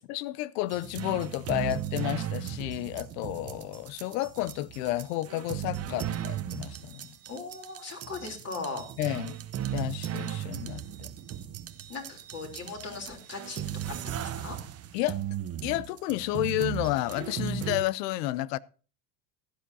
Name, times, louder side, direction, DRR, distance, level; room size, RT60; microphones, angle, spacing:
voice 1, 0.1-7.1 9.0-9.4 9.7-11.1 14.9-15.2 15.6-18.6, left 16 dB, 85° left, 0.7 m, -31 dB
sound 1, 0.7-17.8, right 10 dB, 30° right, 0.8 m, -36 dB
voice 2, 7.3-8.9 11.9-14.6, left 4 dB, 30° left, 3.2 m, -39 dB
16.0 x 10.5 x 2.7 m
supercardioid pair, 125°, 47 cm